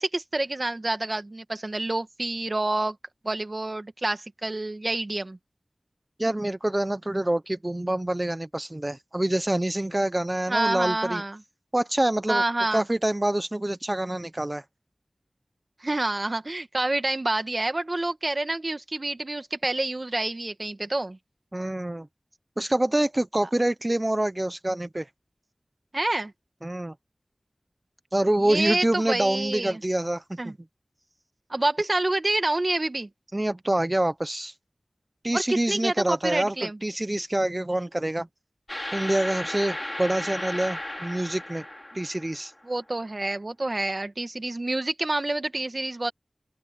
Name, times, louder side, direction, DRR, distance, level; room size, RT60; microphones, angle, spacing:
voice 1, 0.0-3.0 3.2-5.4 10.5-11.4 12.3-12.8 15.8-21.2 25.9-26.3 28.4-29.8 30.4-30.6 31.5-33.1 35.3-36.8 42.6-46.1, right 2 dB, 50° right, 1.9 m, -28 dB
voice 2, 6.2-11.2 11.7-12.4 12.7-14.6 21.5-22.1 22.6-25.1 26.6-26.9 28.1-30.4 33.3-34.5 35.2-38.3 38.9-41.6 41.9-42.5, right 1 dB, 30° right, 0.8 m, -26 dB
sound 1, 38.7-42.6, left 1 dB, 25° left, 3.8 m, -35 dB
open air
wide cardioid pair, 45°, 0 cm